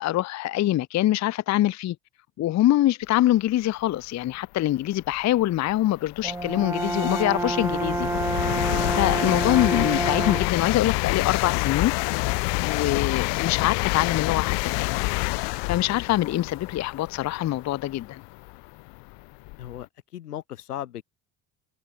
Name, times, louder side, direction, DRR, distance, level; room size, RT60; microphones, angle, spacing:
voice 1, 0.0-2.0 2.4-11.9 12.6-15.0 15.7-18.2, left 14 dB, 40° left, 0.6 m, -24 dB
sound 1, 4.3-4.4 5.0-19.8, left 28 dB, 65° left, 1.0 m, -28 dB
Brass instrument, 6.2-10.6, right 2 dB, 5° right, 0.4 m, -28 dB
voice 2, 19.6-21.0, left 11 dB, 90° left, 2.3 m, -36 dB
hypercardioid pair, 55°, 45 cm